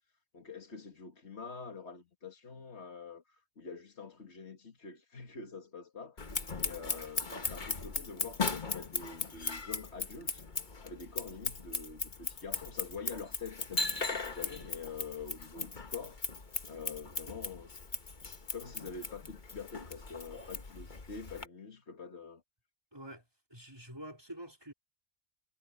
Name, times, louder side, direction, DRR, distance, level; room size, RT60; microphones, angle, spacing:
voice 1, 0.3-10.5 10.8-16.2 16.7-17.8 18.5-22.4, left 5 dB, 60° left, 2.4 m, -46 dB
Scissors, 6.2-21.5, left 4 dB, 40° left, 1.5 m, -38 dB
voice 2, 22.9-23.2 23.5-24.7, right 1 dB, 20° right, 4.0 m, -47 dB
omnidirectional pair, 1.3 m